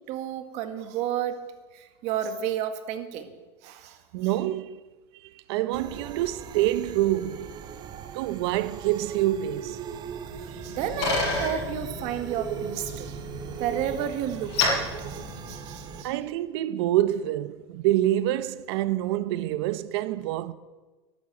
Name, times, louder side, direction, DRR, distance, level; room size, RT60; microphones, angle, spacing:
voice 1, 0.1-1.4 1.7-3.3 3.6-4.0 10.4-13.2 13.6-16.1, right 10 dB, 50° right, 1.8 m, -32 dB
voice 2, 4.1-4.8 5.1-7.5 8.1-9.8 16.0-20.5, right 14 dB, 70° right, 0.9 m, -26 dB
sound 1, 5.7-16.0, right 8 dB, 30° right, 0.9 m, -39 dB
Bicycle, 10.3-16.1, left 4 dB, 75° left, 6.5 m, -32 dB
13.0 x 11.5 x 7.6 m
supercardioid pair, 150°, 14 cm